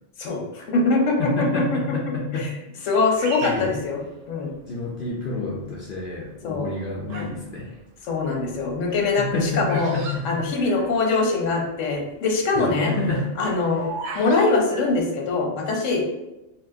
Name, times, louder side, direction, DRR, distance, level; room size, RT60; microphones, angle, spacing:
voice 1, 0.2-1.6 2.4-2.5 2.9-4.0 4.3-4.5 6.4-6.7 8.1-9.9 10.2-12.9 13.4-13.8 14.1-16.1, left 3 dB, 85° left, 1 dB, 1.0 m, -23 dB
voice 2, 1.2-2.5 2.8-2.9 3.4-3.7 4.7-7.8 8.9-10.8 12.5-13.3 13.6-13.9, left 2 dB, 60° left, -3 dB, 0.6 m, -29 dB
Bird vocalization bird call bird song, 3.2-4.7 5.3-5.8 6.5-7.4 7.7-11.2 11.5-11.6 11.7-12.1 12.5-14.4, right 4 dB, 85° right, 0.9 m, -37 dB
4.2 x 2.0 x 2.6 m, 0.95 s
omnidirectional pair, 1.3 m